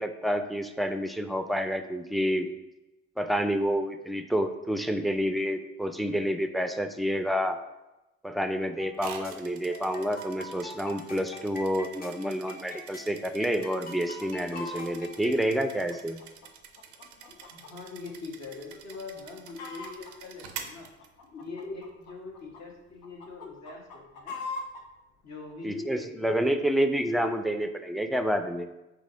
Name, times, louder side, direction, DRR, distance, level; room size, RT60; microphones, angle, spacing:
voice 1, 0.0-2.5 3.2-7.6 8.2-16.2 25.6-28.7, equal, ahead, 8 dB, 0.3 m, -29 dB
sound 1, 8.8-15.3, left 2 dB, 30° left, 0.7 m, -45 dB
sound 2, 9.0-21.6, right 8 dB, 90° right, 0.5 m, -47 dB
Chicken rooster, 14.0-14.9 15.5-17.7 18.1-18.2 18.7-19.0 19.2-20.1 20.8-22.6 23.0-24.8 25.5-25.6, left 3 dB, 90° left, 0.6 m, -41 dB
voice 2, 17.3-20.9 21.2-24.4 25.2-26.4, left 3 dB, 60° left, -2 dB, 1.2 m, -42 dB
4.0 x 2.9 x 3.8 m, 0.99 s
supercardioid pair, 50°, 31 cm